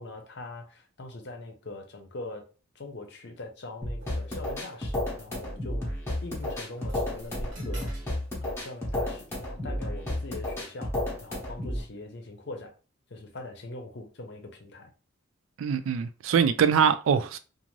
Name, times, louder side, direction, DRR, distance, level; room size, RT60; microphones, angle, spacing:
voice 1, 0.0-2.4 2.7-7.9 8.4-12.7 13.1-14.9, left 2 dB, 55° left, 0.6 m, -42 dB
sound 1, 3.8-11.8, left 1 dB, 10° left, 0.8 m, -32 dB
sound 2, 4.0-5.0 5.9-6.0 6.4-8.2 8.4-8.8 9.6-10.0 10.8-10.9, right 1 dB, 60° right, 1.3 m, -46 dB
voice 2, 15.6-17.4, right 7 dB, 75° right, 0.3 m, -23 dB
2.5 x 2.5 x 3.0 m
head